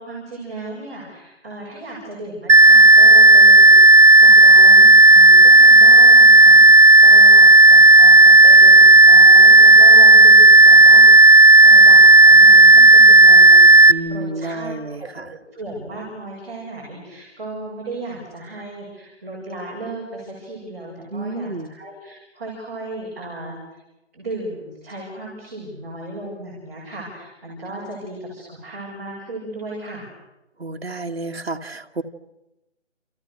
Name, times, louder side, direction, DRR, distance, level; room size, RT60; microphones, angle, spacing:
voice 1, 0.0-23.6 24.1-30.1, right 2 dB, 15° right, -9 dB, 6.8 m, -35 dB
sound 1, 2.5-13.9, right 2 dB, 85° right, 1.5 m, -8 dB
voice 2, 13.9-15.3 21.1-21.7 30.6-32.0, right 2 dB, 55° right, 4 dB, 2.0 m, -30 dB
29.5 x 29.0 x 6.6 m, 0.94 s
figure-of-eight pair, 180°, 36 cm